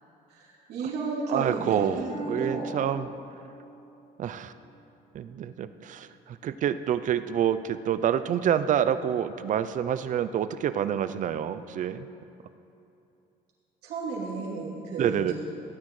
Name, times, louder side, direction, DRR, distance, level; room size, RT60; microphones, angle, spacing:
voice 1, 0.3-2.7 13.8-15.3, right 4 dB, 80° right, -5 dB, 2.9 m, -33 dB
voice 2, 1.3-3.1 4.2-4.5 5.1-12.1 15.0-15.3, right 9 dB, 50° right, 13 dB, 0.4 m, -27 dB
Harp, 2.1-5.8 6.4-6.8 7.4-7.5, equal, 50° left, 2.1 m, -42 dB
16.5 x 9.6 x 3.2 m, 2.8 s
cardioid pair, 110°, 17 cm